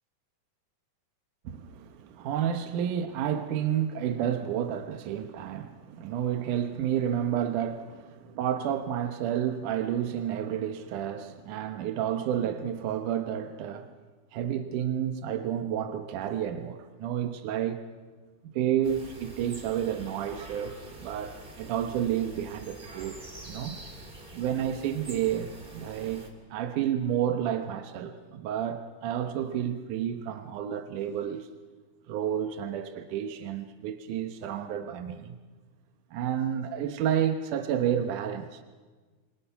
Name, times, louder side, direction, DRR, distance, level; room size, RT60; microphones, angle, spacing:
voice 1, 1.5-13.9 14.3-17.8 18.4-23.2 23.5-23.8 24.3-31.5 32.1-35.4 36.1-38.6, right 9 dB, 80° right, 2.6 m, -30 dB
sound 1, 18.8-26.3, right 2 dB, 20° right, 2.2 m, -46 dB
27.0 x 25.0 x 5.8 m
omnidirectional pair, 3.5 m